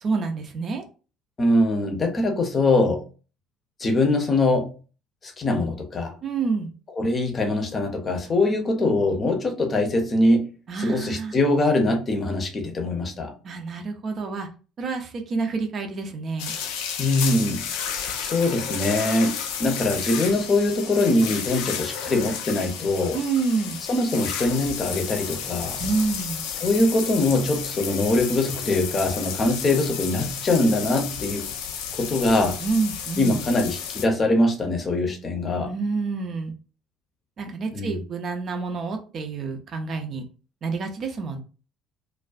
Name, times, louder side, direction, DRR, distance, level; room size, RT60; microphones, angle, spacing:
voice 1, 0.0-0.8 6.2-6.7 10.7-11.3 13.4-14.5 14.8-16.5 23.1-23.8 25.8-26.4 32.6-33.4 35.6-36.5 37.4-40.2 40.6-41.4, right 4 dB, 45° right, 0.5 m, -28 dB
voice 2, 1.4-3.0 3.8-4.7 5.2-6.1 7.0-10.5 10.8-13.3 17.0-23.2 23.9-25.8 26.6-31.5 31.9-32.6 33.2-35.7 37.7-38.0, left 2 dB, 35° left, 0.7 m, -23 dB
sound 1, 16.4-34.0, left 7 dB, 65° left, 0.3 m, -32 dB
2.3 x 2.2 x 2.4 m
figure-of-eight pair, 55°, 0 cm